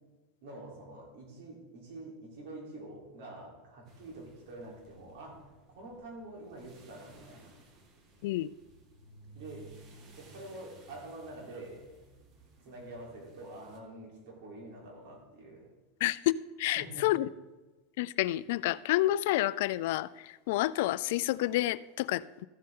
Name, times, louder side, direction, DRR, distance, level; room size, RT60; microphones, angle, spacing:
voice 1, 0.4-7.6 9.3-9.7 10.2-11.8 12.6-15.7 16.7-17.1, right 2 dB, 70° right, -1 dB, 3.5 m, -46 dB
sound 1, 3.6-14.9 21.1-21.2 21.5-21.7, right 3 dB, 30° right, 4.0 m, -60 dB
sound 2, 3.9-13.8, right 2 dB, 45° right, 2.0 m, -61 dB
voice 2, 16.0-17.3 18.0-22.5, left 16 dB, 70° left, 18 dB, 0.3 m, -29 dB
14.0 x 7.6 x 3.8 m, 1.2 s
supercardioid pair, 110°, 0 cm